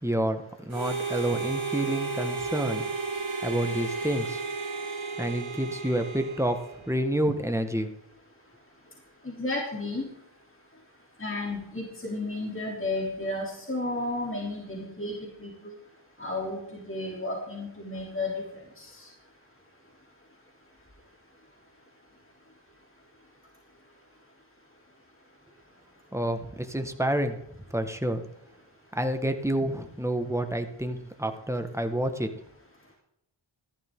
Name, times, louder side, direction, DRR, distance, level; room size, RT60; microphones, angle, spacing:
voice 1, 0.0-2.9 3.4-4.4 5.2-7.9 26.1-27.4 27.7-28.2 28.9-32.3, right 1 dB, 5° right, 7 dB, 1.5 m, -29 dB
Harmonica, 0.7-7.1, right 4 dB, 85° right, 2.2 m, -33 dB
voice 2, 9.2-10.0 11.2-15.7 16.2-18.4 18.8-19.1, left 2 dB, 25° left, -2 dB, 3.2 m, -33 dB
14.5 x 11.5 x 3.8 m, 0.78 s
wide cardioid pair, 40°, 47 cm